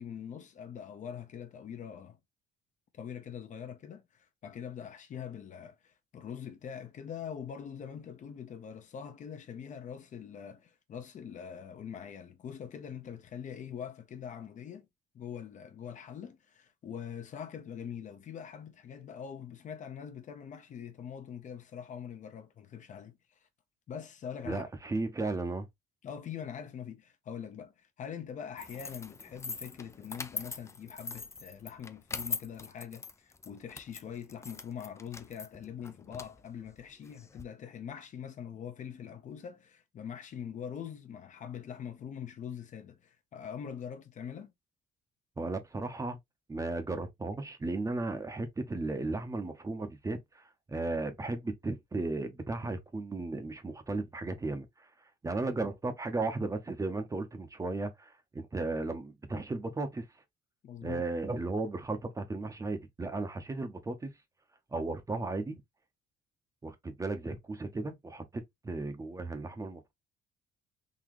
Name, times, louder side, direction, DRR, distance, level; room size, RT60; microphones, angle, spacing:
voice 1, 0.0-2.2 2.9-14.9 15.1-23.2 23.9-24.6 26.0-44.5 60.6-61.0, left 8 dB, 45° left, 0.8 m, -43 dB
voice 2, 24.4-25.7 45.4-46.2 46.5-54.9 55.2-60.0 60.8-64.1 64.7-65.6 66.6-69.9, right 3 dB, 20° right, 0.8 m, -35 dB
sound 1, 28.6-37.4, left 4 dB, 15° left, 0.4 m, -42 dB
3.9 x 2.8 x 3.0 m
cardioid pair, 110°, 17 cm